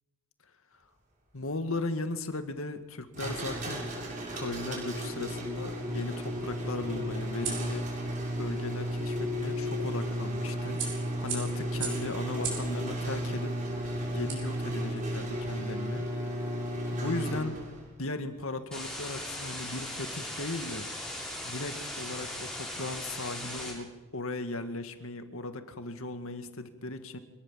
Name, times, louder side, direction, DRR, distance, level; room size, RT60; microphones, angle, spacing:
voice 1, 1.3-3.9 4.3-7.9 8.4-13.6 14.1-16.1 16.9-17.6 18.0-20.9 21.4-27.2, left 2 dB, 70° left, 8 dB, 1.9 m, -37 dB
sound 1, 3.1-17.8, equal, 35° right, 7.5 m, -34 dB
sound 2, 5.2-15.1, right 6 dB, 55° right, 7.8 m, -43 dB
sound 3, 18.7-23.7, left 1 dB, 5° left, 7.1 m, -38 dB
26.0 x 19.0 x 7.5 m, 1.1 s
head